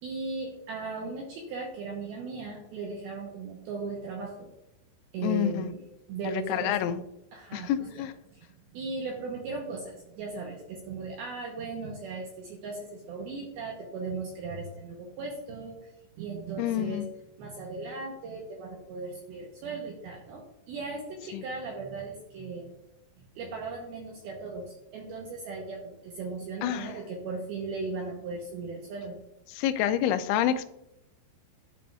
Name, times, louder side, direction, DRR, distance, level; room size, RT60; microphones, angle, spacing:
voice 1, 0.0-4.5 5.1-5.8 6.1-6.9 7.3-8.0 8.3-15.9 16.2-17.1 17.4-22.7 23.4-29.1, right 4 dB, 90° right, 0 dB, 2.2 m, -37 dB
voice 2, 5.2-5.7 6.2-7.0 7.5-8.1 16.6-17.1 21.3-21.4 26.6-26.9 29.5-30.7, left 11 dB, 85° left, 10 dB, 2.8 m, -28 dB
12.5 x 5.1 x 2.3 m, 0.86 s
omnidirectional pair, 5.6 m